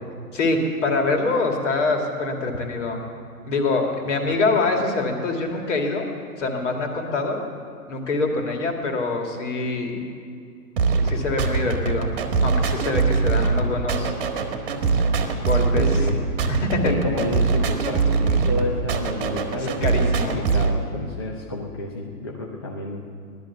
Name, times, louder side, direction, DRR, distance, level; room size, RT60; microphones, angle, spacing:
voice 1, 0.3-3.1 3.4-6.1 6.4-7.4 7.9-10.1 11.0-12.1 12.4-14.1 15.4-15.8 16.5-16.9 19.6-20.4, left 3 dB, 50° left, 2 dB, 2.6 m, -24 dB
sound 1, 10.8-20.8, right 4 dB, 35° right, 1.5 m, -23 dB
voice 2, 15.7-16.2 16.8-23.0, left 2 dB, 15° left, -1 dB, 0.5 m, -30 dB
16.5 x 12.0 x 7.1 m, 2.3 s
hypercardioid pair, 155°, 47 cm